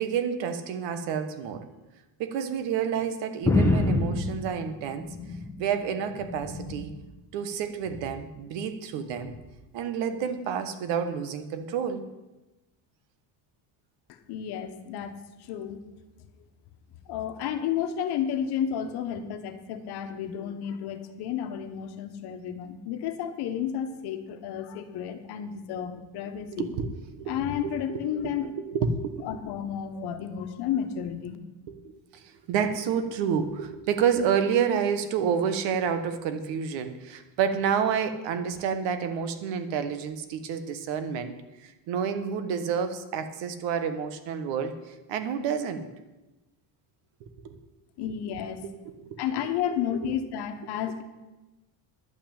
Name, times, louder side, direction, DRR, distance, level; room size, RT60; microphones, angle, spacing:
voice 1, 0.0-1.7 2.2-5.1 5.6-6.9 7.3-9.3 9.7-12.1 26.5-27.4 27.6-29.3 31.7-31.8 32.1-41.4 41.6-45.9 47.2-47.6 48.6-49.2 49.7-49.8, right 7 dB, 85° right, 10 dB, 1.3 m, -29 dB
sound 1, 3.5-5.7 6.1-7.0 7.9-8.2 9.2-9.4, left 2 dB, 5° left, 1.3 m, -27 dB
voice 2, 14.3-15.1 15.5-15.9 17.1-26.7 27.3-28.5 29.2-31.4 48.0-48.6 49.2-51.0, left 9 dB, 60° left, 8 dB, 1.3 m, -32 dB
11.0 x 5.9 x 8.9 m, 1.1 s
cardioid pair, 165°, 43 cm